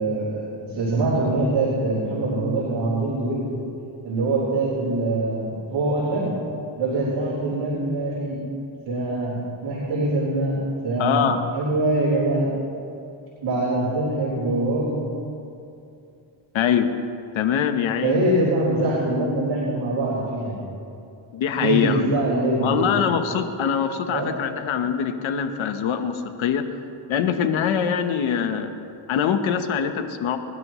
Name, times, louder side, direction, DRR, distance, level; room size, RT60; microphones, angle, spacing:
voice 1, 0.0-3.6 4.0-6.3 6.8-8.4 8.8-10.6 10.8-11.3 11.5-12.5 13.4-15.0 18.0-20.6 21.6-23.0 24.1-24.3, right 2 dB, 75° right, -8 dB, 4.1 m, -23 dB
voice 2, 11.0-11.4 16.5-16.9 17.3-18.2 21.3-22.2 22.6-26.6 27.1-28.7 29.1-30.4, left 8 dB, 85° left, 8 dB, 1.1 m, -23 dB
25.0 x 12.0 x 3.1 m, 2.6 s
cardioid pair, 80°, 46 cm